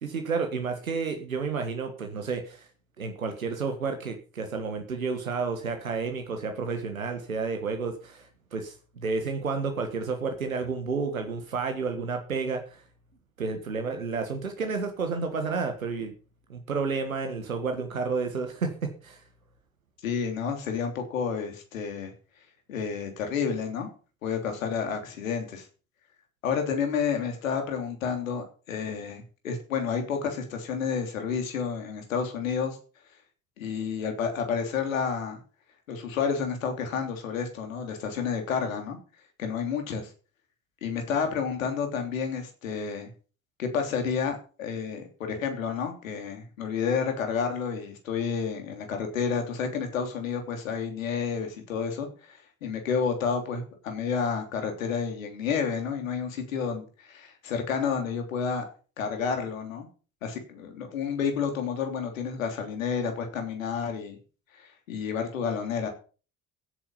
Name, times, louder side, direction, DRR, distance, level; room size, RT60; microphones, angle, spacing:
voice 1, 0.0-2.7 3.0-12.8 13.4-16.1 16.5-19.2, right 4 dB, 80° right, 6 dB, 1.7 m, -31 dB
voice 2, 20.0-22.1 22.7-23.9 24.2-25.7 26.4-32.8 33.6-35.4 35.9-39.0 39.4-40.1 40.8-43.1 43.6-58.6 59.0-59.9 60.2-64.2 64.5-65.9, left 6 dB, 75° left, 5 dB, 3.4 m, -30 dB
16.0 x 8.7 x 5.6 m, 0.38 s
figure-of-eight pair, 50°, 40 cm